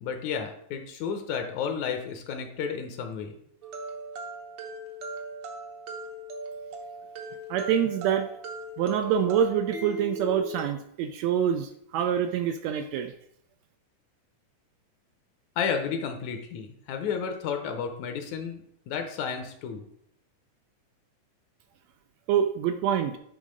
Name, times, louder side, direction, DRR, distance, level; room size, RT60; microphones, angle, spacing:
voice 1, 0.0-3.4 15.6-19.9, left 6 dB, 75° left, 5 dB, 2.0 m, -32 dB
sound 1, 3.6-10.6, right 1 dB, 60° right, 1.3 m, -39 dB
voice 2, 7.5-8.3 8.8-13.1 22.3-23.2, right 9 dB, 80° right, 8 dB, 1.6 m, -26 dB
9.3 x 3.6 x 5.1 m, 0.71 s
omnidirectional pair, 3.4 m